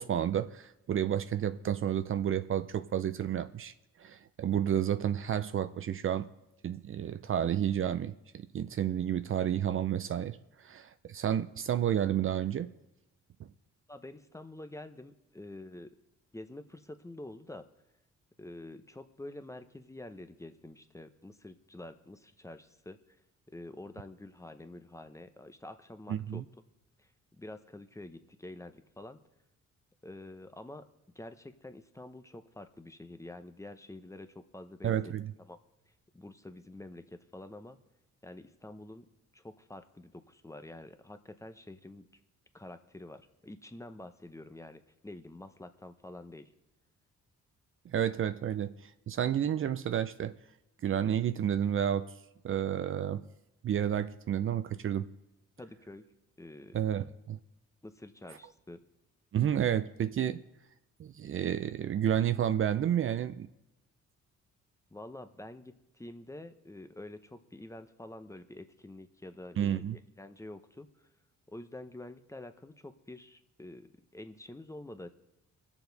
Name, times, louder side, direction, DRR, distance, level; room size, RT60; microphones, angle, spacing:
voice 1, 0.0-3.7 4.0-6.3 6.6-12.7 26.1-26.4 34.8-35.3 47.9-50.4 50.8-52.1 52.4-53.2 53.6-55.1 56.7-57.4 59.3-60.4 61.0-63.5 69.6-70.0, right 10 dB, 45° right, 11 dB, 0.5 m, -31 dB
voice 2, 13.9-15.9 16.3-17.7 18.4-23.2 23.5-26.4 27.0-27.1 27.4-29.2 30.0-30.9 31.1-35.1 35.5-35.6 36.1-37.8 38.2-39.1 39.3-42.1 42.5-46.5 55.6-56.1 56.4-56.8 57.8-58.8 64.9-71.1 71.5-75.1, left 1 dB, 10° left, 9 dB, 0.7 m, -47 dB
21.0 x 7.1 x 4.0 m, 0.91 s
cardioid pair, 90°, 30 cm